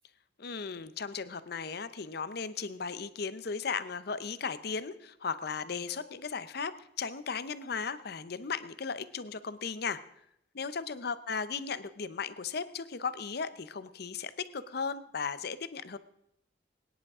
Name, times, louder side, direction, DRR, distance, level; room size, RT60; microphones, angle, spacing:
voice 1, 0.4-10.0 10.5-16.0, left 5 dB, 55° left, 14 dB, 0.7 m, -36 dB
22.0 x 10.5 x 3.6 m, 0.77 s
head